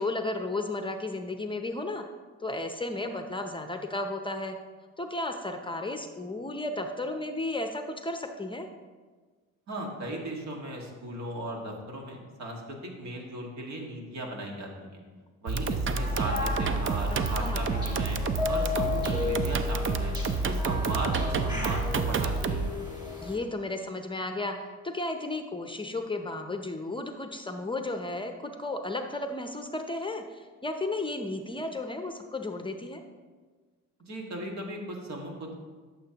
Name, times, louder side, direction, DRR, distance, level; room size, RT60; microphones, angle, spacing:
voice 1, 0.0-2.0 2.4-4.6 5.0-8.7 17.4-17.6 23.2-24.6 24.8-33.0, left 2 dB, 15° left, 5 dB, 0.6 m, -33 dB
voice 2, 9.7-15.0 15.4-18.2 18.5-20.1 20.4-22.7 34.0-35.6, right 1 dB, 65° right, 0 dB, 1.9 m, -37 dB
sound 1, 15.5-22.7, right 4 dB, 40° right, 0.6 m, -29 dB
sound 2, 15.9-23.4, left 4 dB, 15° right, 2.4 m, -34 dB
12.5 x 6.9 x 2.9 m, 1.4 s
cardioid pair, 90°, 30 cm